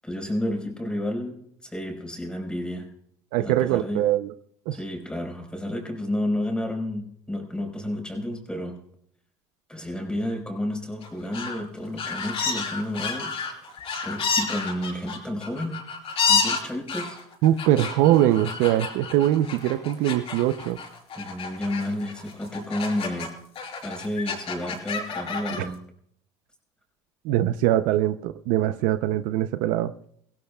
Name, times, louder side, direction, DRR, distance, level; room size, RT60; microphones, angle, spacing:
voice 1, 0.0-1.4 1.6-2.9 3.4-4.0 4.7-8.8 9.7-13.7 14.0-15.8 16.3-17.2 21.1-23.3 23.8-25.8, left 1 dB, 5° left, 4.8 m, -31 dB
voice 2, 3.3-4.3 4.7-4.8 17.4-20.8 27.2-29.9, right 13 dB, 75° right, 0.7 m, -22 dB
sound 1, 11.0-11.6 12.0-23.3 23.6-25.6, left 5 dB, 45° left, 4.9 m, -30 dB
24.0 x 16.5 x 2.3 m
supercardioid pair, 100°, 14 cm